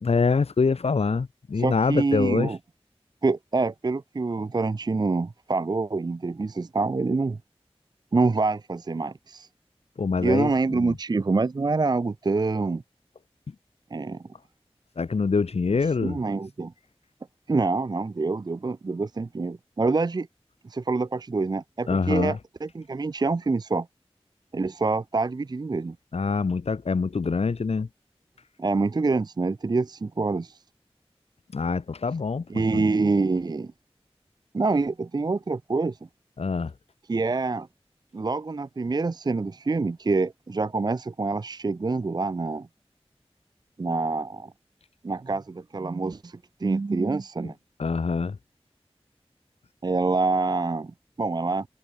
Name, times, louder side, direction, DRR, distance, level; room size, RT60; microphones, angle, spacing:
voice 1, 0.0-2.5 10.0-11.0 15.0-16.2 21.9-22.4 26.1-27.9 31.5-32.4 32.7-32.8 36.4-36.7 47.8-48.4, left 4 dB, 75° left, 0.5 m, -25 dB
voice 2, 1.6-2.6 3.2-7.4 8.1-9.5 10.2-12.8 13.9-14.2 16.0-16.7 17.5-20.3 20.6-23.9 24.5-26.0 28.6-30.6 32.5-33.7 34.5-36.0 37.1-37.7 38.1-42.7 43.8-44.5 45.0-47.5 49.8-51.7, right 3 dB, 40° right, 0.4 m, -26 dB
wide cardioid pair, 45°, 11 cm